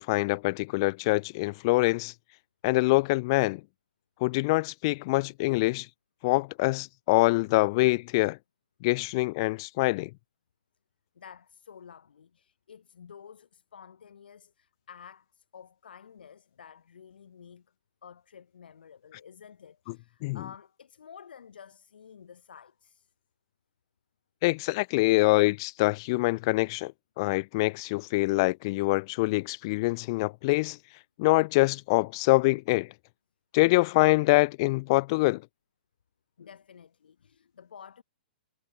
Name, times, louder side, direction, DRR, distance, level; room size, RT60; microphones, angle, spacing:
voice 1, 0.0-2.1 2.6-3.6 4.2-5.9 6.2-8.4 8.8-10.1 20.2-20.4 24.4-26.9 27.2-30.8 31.2-32.9 33.5-35.4, left 23 dB, 30° left, 1.4 m, -25 dB
voice 2, 11.2-17.7 18.0-23.1 36.4-38.0, left 7 dB, 90° left, 7.1 m, -51 dB
hypercardioid pair, 170°, 5 cm